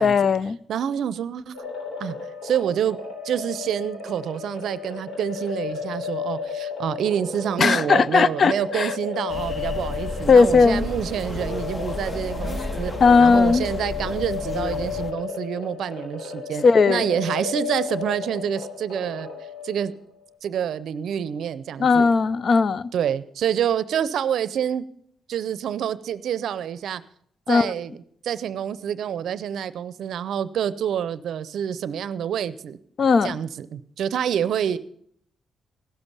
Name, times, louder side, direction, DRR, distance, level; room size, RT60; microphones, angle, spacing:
voice 1, 0.0-0.6 7.6-8.9 10.3-10.9 13.0-13.6 16.6-17.1 21.8-22.9 27.5-27.7 33.0-33.4, left 4 dB, 55° left, 0.4 m, -17 dB
voice 2, 0.7-1.6 2.0-2.2 2.4-3.0 3.2-12.9 13.2-19.3 19.6-19.9 20.4-22.1 22.9-24.9 25.3-27.0 27.5-27.9 28.2-32.8 33.2-34.8, right 9 dB, 75° right, 0.5 m, -27 dB
sound 1, 1.5-20.0, left 5 dB, 75° left, 3.4 m, -33 dB
sound 2, 9.3-15.1, left 2 dB, 35° left, 0.9 m, -32 dB
16.5 x 7.1 x 5.5 m
supercardioid pair, 60°, 0 cm